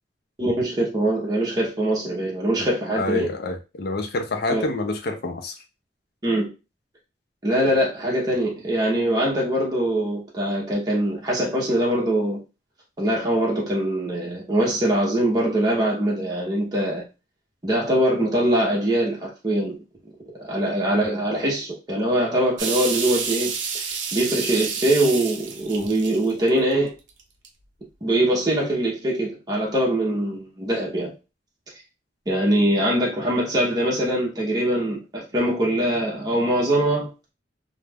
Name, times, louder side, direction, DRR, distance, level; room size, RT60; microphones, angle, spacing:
voice 1, 0.4-3.3 4.5-4.6 6.2-6.5 7.4-12.4 13.0-17.0 17.6-19.8 20.4-26.9 28.0-31.1 32.3-37.1, right 1 dB, 20° right, 0.7 m, -23 dB
voice 2, 3.0-5.6, left 2 dB, 55° left, 0.5 m, -27 dB
sound 1, 22.6-26.7 27.2-27.5, right 6 dB, 85° right, 0.6 m, -29 dB
2.3 x 2.0 x 3.3 m
head